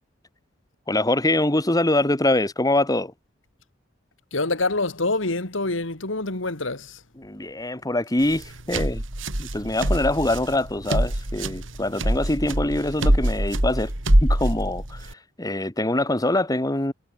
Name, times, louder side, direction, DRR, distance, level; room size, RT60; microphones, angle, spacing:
voice 1, 0.9-3.1 7.2-9.0 9.4-13.9 14.2-15.1 15.4-16.9, left 1 dB, 20° left, 1.7 m, -24 dB
voice 2, 4.3-7.0, left 2 dB, 90° left, 2.7 m, -26 dB
sound 1, 8.2-15.1, right 1 dB, 85° right, 4.5 m, -24 dB
head